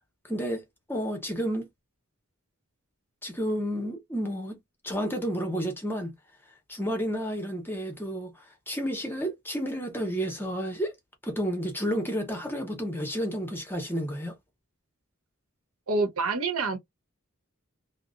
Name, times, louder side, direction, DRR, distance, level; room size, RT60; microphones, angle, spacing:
voice 1, 0.3-0.6 0.9-1.7 3.2-4.6 4.8-6.1 6.7-8.3 8.7-10.9 11.2-14.4, equal, 10° left, 0.7 m, -31 dB
voice 2, 15.9-16.8, right 3 dB, 85° right, 0.9 m, -27 dB
2.8 x 2.0 x 2.4 m
head